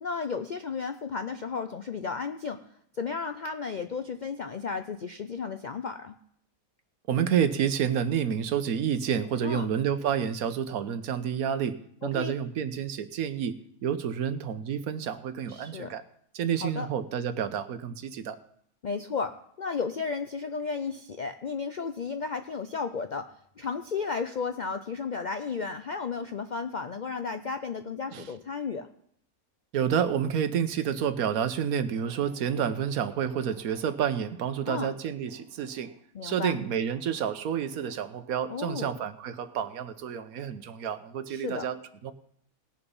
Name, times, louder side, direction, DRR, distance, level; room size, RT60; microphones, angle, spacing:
voice 1, 0.0-2.6 2.9-6.1 9.4-9.7 12.0-12.3 15.5-15.9 16.6-16.9 18.8-23.3 23.6-28.9 34.7-34.9 36.1-36.6 38.5-38.9 41.3-41.7, left 5 dB, 65° left, 8 dB, 0.4 m, -33 dB
voice 2, 7.1-11.8 12.0-13.5 13.8-16.0 16.3-18.4 28.1-28.2 29.7-35.9 36.2-42.1, right 8 dB, 80° right, 11 dB, 1.3 m, -29 dB
18.5 x 7.0 x 5.3 m, 0.69 s
omnidirectional pair, 1.5 m